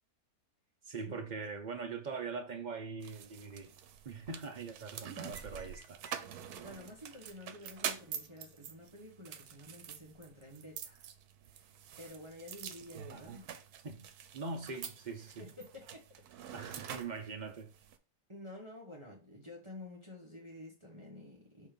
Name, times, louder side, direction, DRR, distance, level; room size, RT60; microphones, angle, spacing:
voice 1, 0.8-3.7 4.0-6.0 13.1-13.4 13.8-14.1 14.3-15.5 16.5-17.7, right 4 dB, 45° right, 0.6 m, -42 dB
atmo small market, 3.0-18.0, right 8 dB, 85° right, 1.2 m, -46 dB
voice 2, 6.5-11.1 11.5-11.6 12.0-13.4 15.4-16.0 16.4-16.6 18.3-21.7, left 1 dB, 20° right, 1.4 m, -50 dB
6.3 x 3.0 x 5.1 m
omnidirectional pair, 1.6 m